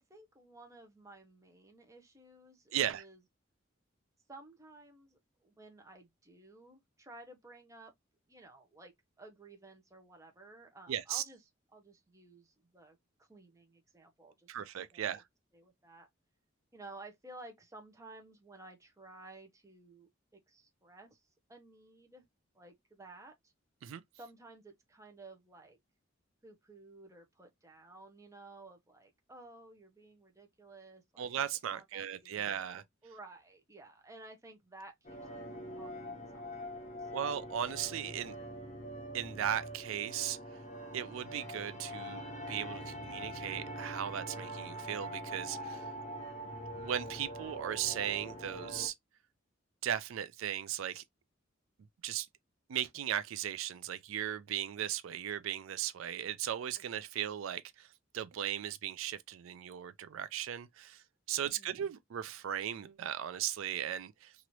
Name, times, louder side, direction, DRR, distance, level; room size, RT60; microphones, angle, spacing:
voice 1, 0.0-3.2 4.3-7.9 8.3-11.4 11.7-15.2 15.5-16.1 16.7-20.1 20.5-22.2 22.5-23.5 24.2-25.8 26.4-31.3 31.7-35.5 35.7-36.7 37.0-37.1 61.4-61.9, right 2 dB, 15° right, 0.7 m, -55 dB
voice 2, 2.7-3.0 10.9-11.2 14.5-15.2 23.8-24.0 31.2-32.8 37.1-38.3 39.1-40.4 40.9-45.9 46.7-48.9 49.8-51.0 52.0-52.3 52.7-57.9 58.1-64.3, right 10 dB, 80° right, 0.4 m, -37 dB
sound 1, 35.0-48.9, equal, 35° left, 0.7 m, -44 dB
3.0 x 2.5 x 2.9 m
head